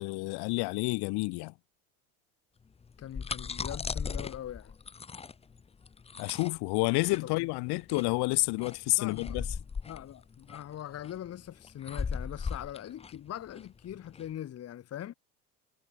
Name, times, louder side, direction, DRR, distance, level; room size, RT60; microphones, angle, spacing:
voice 1, 0.0-1.5 6.2-9.4, left 25 dB, 55° left, 1.4 m, -29 dB
sound 1, 2.8-14.3, left 5 dB, 15° left, 0.7 m, -38 dB
voice 2, 3.0-4.7 7.2-7.5 9.0-9.4 9.9-15.1, left 11 dB, 30° left, 1.1 m, -42 dB
figure-of-eight pair, 70°, 47 cm